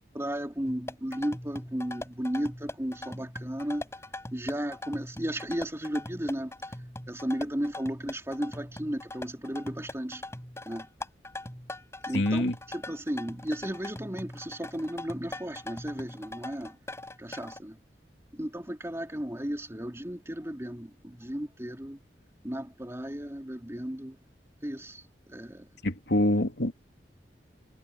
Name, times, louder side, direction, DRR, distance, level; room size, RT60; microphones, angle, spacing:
voice 1, 0.1-3.9 4.3-6.5 7.1-10.2 10.6-10.9 12.1-16.8 17.2-17.8 18.3-22.0 22.4-24.2 24.6-25.7, equal, 15° right, 3.0 m, -34 dB
sound 1, 0.7-17.6, left 1 dB, 15° left, 7.0 m, -41 dB
voice 2, 12.1-12.5 25.8-26.7, left 1 dB, 75° left, 2.9 m, -25 dB
head